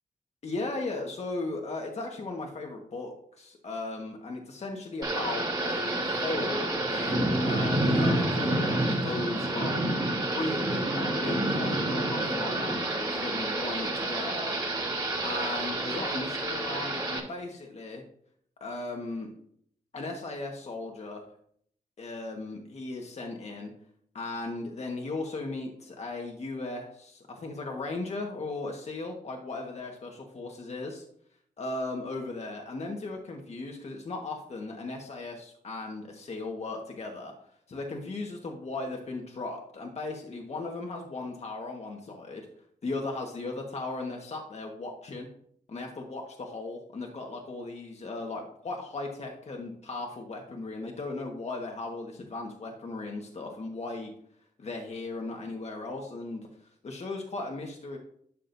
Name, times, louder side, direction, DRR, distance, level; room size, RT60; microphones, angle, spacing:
voice 1, 0.4-9.9 10.3-14.6 15.2-18.0 18.6-19.3 19.9-21.2 22.0-23.7 24.1-31.0 31.6-37.3 37.7-42.4 42.8-45.3 45.7-54.1 54.6-56.5 56.8-58.0, left 2 dB, 50° left, 1 dB, 1.5 m, -37 dB
Thunder / Rain, 5.0-17.2, right 1 dB, 25° right, 3.2 m, -28 dB
11.5 x 7.3 x 2.7 m, 0.65 s
wide cardioid pair, 105°, 14 cm